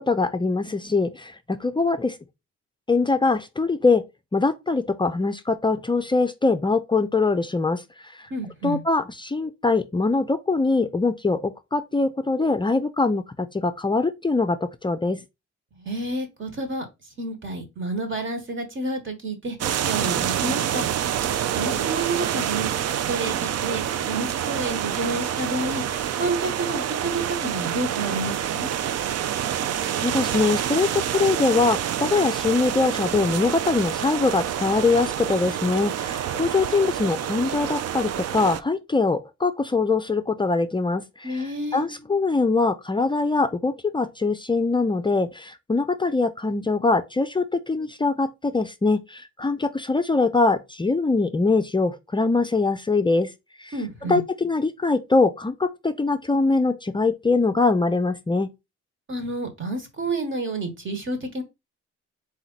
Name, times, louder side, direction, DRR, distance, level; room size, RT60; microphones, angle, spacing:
voice 1, 0.0-2.2 2.9-4.0 4.3-8.3 8.6-15.2 30.0-41.5 41.7-53.3 53.6-53.7 54.0-58.5, left 3 dB, 15° left, 0.4 m, -23 dB
voice 2, 8.3-8.8 15.8-16.8 17.2-19.6 19.9-20.8 21.6-22.7 23.1-25.8 26.2-28.7 41.2-41.9 53.7-54.2 59.1-61.4, right 2 dB, 40° right, 1.4 m, -29 dB
sound 1, 19.6-38.6, right 10 dB, 55° right, 0.5 m, -27 dB
4.2 x 3.0 x 3.9 m
cardioid pair, 90°, 30 cm